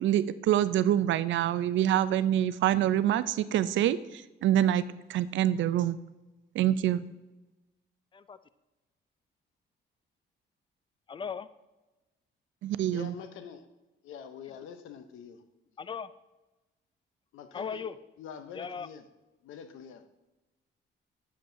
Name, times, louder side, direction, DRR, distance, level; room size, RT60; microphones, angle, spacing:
voice 1, 0.0-4.8 5.1-6.0 6.6-7.1 12.6-13.1, right 11 dB, 70° right, 15 dB, 0.4 m, -26 dB
voice 2, 11.1-11.5 15.8-16.1 17.5-18.0 18.5-18.9, left 6 dB, 25° left, 15 dB, 0.4 m, -37 dB
voice 3, 12.9-13.7 14.0-15.4 17.3-17.8 18.2-19.1 19.4-20.0, left 7 dB, 85° left, 10 dB, 0.8 m, -45 dB
10.0 x 7.5 x 2.7 m, 1.1 s
cardioid pair, 90°, 20 cm